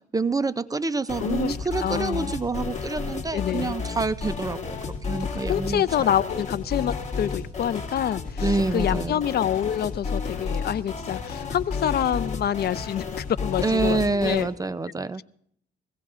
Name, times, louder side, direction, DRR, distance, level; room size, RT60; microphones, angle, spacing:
voice 1, 0.1-4.8 5.1-6.1 8.4-9.2 13.6-15.2, right 3 dB, 20° right, 14 dB, 0.4 m, -27 dB
sound 1, 1.1-14.5, left 5 dB, 35° left, 2.3 m, -32 dB
voice 2, 1.2-2.3 3.3-3.7 5.5-14.5, left 10 dB, 55° left, 17 dB, 0.5 m, -27 dB
22.5 x 16.5 x 2.4 m, 0.67 s
cardioid pair, 90°, 20 cm